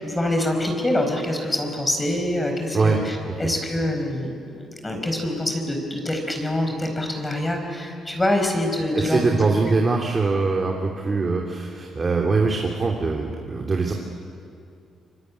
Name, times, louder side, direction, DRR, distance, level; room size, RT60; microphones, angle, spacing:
voice 1, 0.0-9.4, left 1 dB, 15° left, 3 dB, 4.8 m, -25 dB
voice 2, 8.9-13.9, right 4 dB, 35° right, 1 dB, 3.0 m, -22 dB
25.0 x 23.0 x 9.7 m, 2.5 s
cardioid pair, 90°, 0 cm